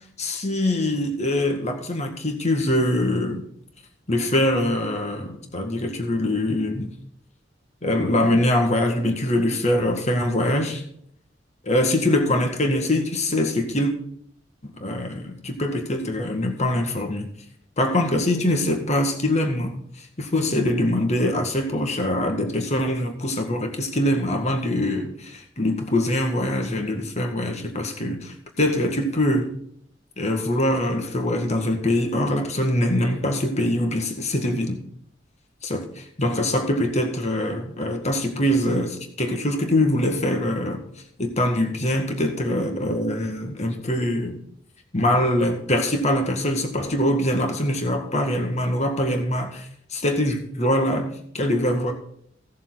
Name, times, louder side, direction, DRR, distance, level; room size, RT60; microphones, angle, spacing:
voice 1, 0.2-3.5 4.1-6.9 7.8-10.8 11.6-13.9 14.6-17.3 17.8-19.8 20.2-29.5 30.2-34.8 35.6-40.8 41.2-44.4 44.9-51.9, left 1 dB, 40° left, 1.8 m, -23 dB
16.5 x 7.2 x 4.0 m
head